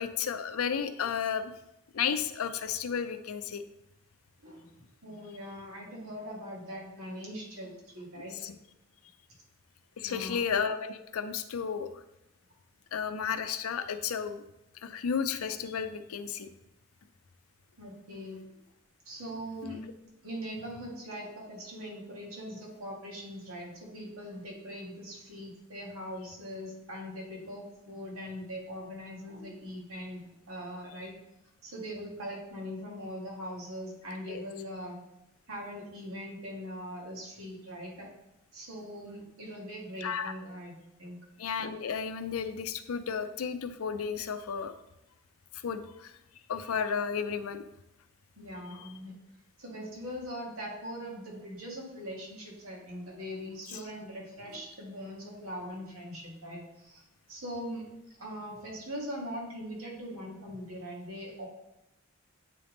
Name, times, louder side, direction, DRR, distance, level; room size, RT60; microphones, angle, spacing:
voice 1, 0.0-1.5 1.9-3.6 8.2-8.5 10.0-12.0 12.9-14.4 14.8-16.5 19.6-19.8 34.3-34.4 40.0-40.3 41.4-44.7 45.6-46.1 46.5-47.6, left 7 dB, 85° left, 10 dB, 0.5 m, -33 dB
voice 2, 4.4-8.4 10.0-10.4 17.8-18.4 19.1-19.8 20.2-31.1 31.6-35.0 35.5-38.1 38.5-41.2 48.4-49.2 49.6-57.0 57.3-57.9 58.2-61.5, equal, 80° right, -3 dB, 1.8 m, -41 dB
8.4 x 3.5 x 3.8 m, 0.88 s
head